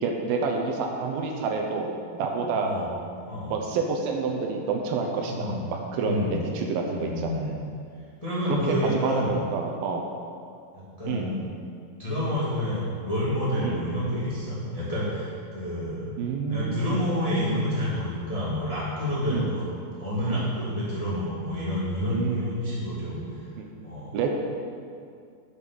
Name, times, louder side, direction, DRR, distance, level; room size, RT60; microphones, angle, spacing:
voice 1, 0.0-2.7 3.5-7.4 8.5-8.6 9.0-10.0 11.1-11.3 13.6-13.8 16.2-17.0 19.3-19.6 20.3-20.5 22.1-22.6 23.6-23.7 24.1-24.3, right 4 dB, 80° right, 2 dB, 2.5 m, -29 dB
voice 2, 5.2-5.6 6.0-6.4 6.9-7.5 8.2-9.3 10.7-11.4 12.0-19.6 19.9-23.4 23.8-24.1, equal, 10° left, -9 dB, 1.9 m, -29 dB
8.4 x 7.3 x 6.3 m, 2.3 s
omnidirectional pair, 4.4 m